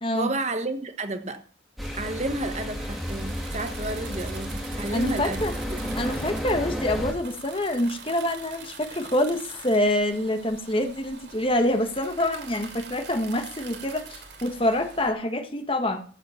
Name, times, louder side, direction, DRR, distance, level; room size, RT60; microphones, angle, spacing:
voice 1, 0.1-1.4 1.9-6.0, right 2 dB, 35° right, 1.3 m, -32 dB
sound 1, 1.8-7.1, equal, ahead, 2.7 m, -32 dB
sound 2, 1.8-15.1, right 5 dB, 60° right, 3.2 m, -44 dB
voice 2, 4.9-5.5 5.9-16.0, left 1 dB, 25° left, 1.6 m, -26 dB
14.5 x 8.4 x 5.8 m
head